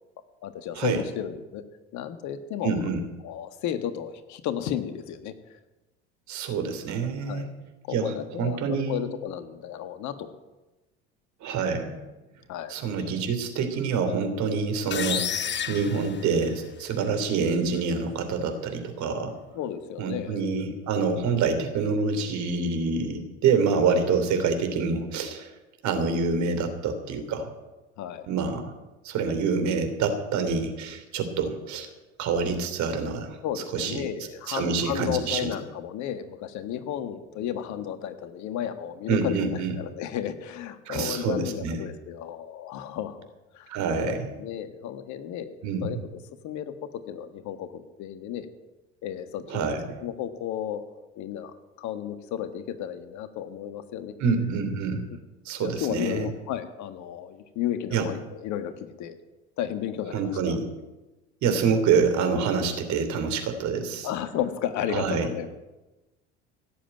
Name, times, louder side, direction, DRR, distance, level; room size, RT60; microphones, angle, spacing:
voice 1, 0.4-1.6 1.9-2.8 3.2-5.6 7.3-7.5 7.9-10.3 12.5-13.1 19.5-20.5 28.0-28.3 33.4-43.3 43.5-43.7 44.0-46.0 46.4-46.7 47.1-48.5 49.0-49.7 50.0-50.8 51.2-54.1 55.6-59.2 59.6-60.6 64.0-65.5, left 10 dB, 55° left, 10 dB, 1.6 m, -33 dB
voice 2, 2.6-3.0 6.3-7.5 7.9-9.0 11.4-12.0 12.7-15.3 15.7-19.4 20.0-25.5 25.8-27.5 28.3-28.7 29.0-31.9 32.2-34.0 34.5-35.5 39.1-39.7 40.8-41.8 43.7-44.3 45.6-46.0 49.5-50.0 54.2-55.0 55.4-56.3 57.9-58.1 60.1-60.6 61.4-64.1 64.9-65.3, right 5 dB, 55° right, 7 dB, 3.1 m, -26 dB
sound 1, 14.9-16.9, left 8 dB, 30° left, 1.0 m, -31 dB
16.5 x 7.6 x 9.0 m, 1.1 s
hypercardioid pair, 70°, 34 cm